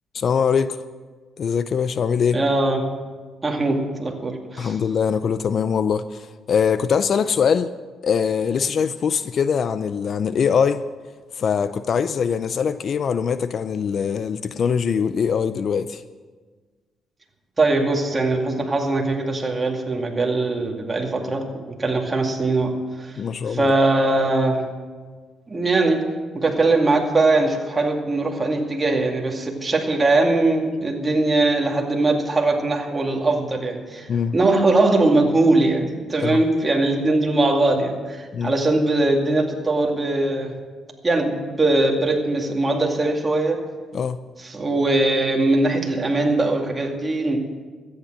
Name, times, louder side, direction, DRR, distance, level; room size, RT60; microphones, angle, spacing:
voice 1, 0.1-0.8 1.4-2.4 4.6-7.7 8.0-10.8 11.3-16.0 23.2-23.7 34.1-34.4 36.2-36.4 38.3-38.5 43.9-44.2, left 6 dB, 55° left, 0.4 m, -22 dB
voice 2, 2.3-2.9 3.4-4.7 17.6-21.5 21.8-23.2 23.5-24.7 25.5-40.6 41.0-43.6 44.4-47.4, right 2 dB, 25° right, 2.2 m, -21 dB
13.5 x 8.8 x 7.8 m
cardioid pair, 90°, 0 cm